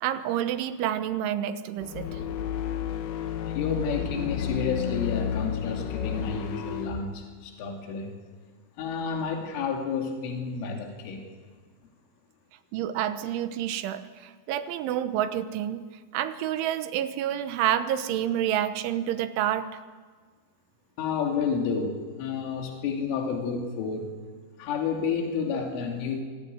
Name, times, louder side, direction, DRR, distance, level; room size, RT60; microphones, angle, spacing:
voice 1, 0.0-2.1 12.7-15.8 16.1-19.7, right 11 dB, 80° right, 11 dB, 3.4 m, -28 dB
sound 1, 1.8-7.0, left 8 dB, 65° left, 2.8 m, -31 dB
voice 2, 3.5-8.1 8.8-11.3 21.0-24.1 24.6-26.2, left 5 dB, 80° left, 2 dB, 5.0 m, -30 dB
25.0 x 17.0 x 9.4 m, 1.5 s
omnidirectional pair, 5.6 m